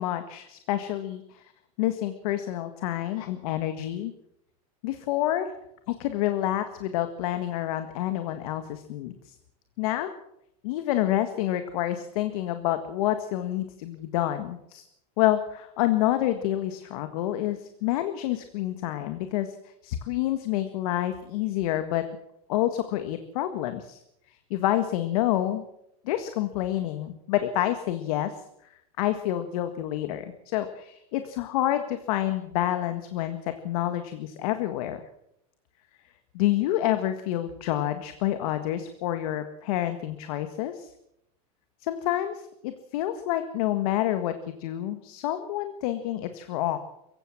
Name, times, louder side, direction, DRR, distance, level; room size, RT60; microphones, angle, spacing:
voice 1, 0.0-1.5 1.8-4.1 4.8-5.5 5.9-9.3 9.8-10.1 10.6-14.8 15.2-22.1 22.5-24.0 24.3-25.6 26.1-28.4 29.0-35.0 36.3-40.9 41.8-46.8, left 13 dB, 65° left, 9 dB, 1.8 m, -28 dB
22.5 x 16.0 x 7.3 m, 0.79 s
supercardioid pair, 135°, 20 cm